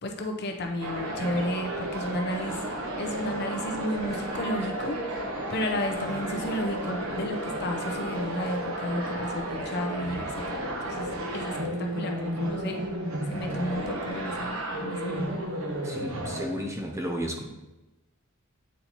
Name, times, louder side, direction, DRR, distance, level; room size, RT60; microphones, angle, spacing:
voice 1, 0.0-2.6 3.0-12.8 13.3-15.4, left 1 dB, 55° left, 3 dB, 0.7 m, -33 dB
sound 1, 0.8-16.5, right 1 dB, 85° right, 1.0 m, -33 dB
voice 2, 15.8-17.5, equal, 15° right, 2 dB, 0.6 m, -33 dB
8.4 x 4.0 x 2.9 m, 1.0 s
head